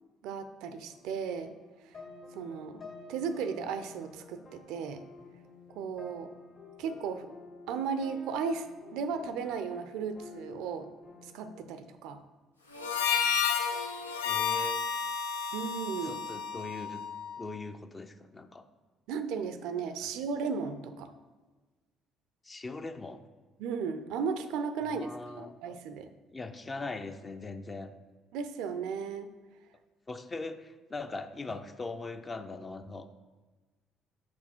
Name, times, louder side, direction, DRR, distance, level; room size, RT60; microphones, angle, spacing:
voice 1, 0.2-1.5 1.8-2.0 2.3-2.8 3.1-5.0 5.7-6.3 6.8-7.3 7.7-10.9 11.2-12.2 15.5-16.2 19.1-21.1 23.6-25.1 25.4-26.1 28.3-29.3, right 6 dB, 65° right, 10 dB, 0.4 m, -35 dB
sound 1, 0.9-11.7, left 3 dB, 50° left, 1.8 m, -51 dB
Harmonica, 12.7-17.4, left 7 dB, 85° left, 0.6 m, -31 dB
voice 2, 14.2-14.9 16.0-17.1 17.4-18.6 20.0-20.1 22.4-23.2 24.8-25.6 26.3-27.9 30.1-33.1, left 3 dB, 25° left, 8 dB, 0.6 m, -40 dB
6.1 x 5.8 x 4.4 m, 1.3 s
figure-of-eight pair, 50°, 0 cm